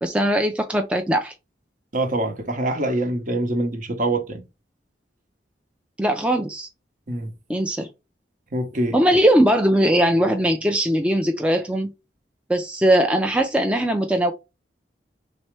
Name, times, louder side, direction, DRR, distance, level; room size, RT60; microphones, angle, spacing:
voice 1, 0.0-1.3 6.0-6.7 7.5-7.9 8.9-11.9 12.5-14.3, right 1 dB, 5° right, 0.4 m, -20 dB
voice 2, 1.9-4.4 7.1-7.3 8.5-9.0, right 1 dB, 50° right, 0.9 m, -24 dB
4.2 x 3.5 x 3.2 m
head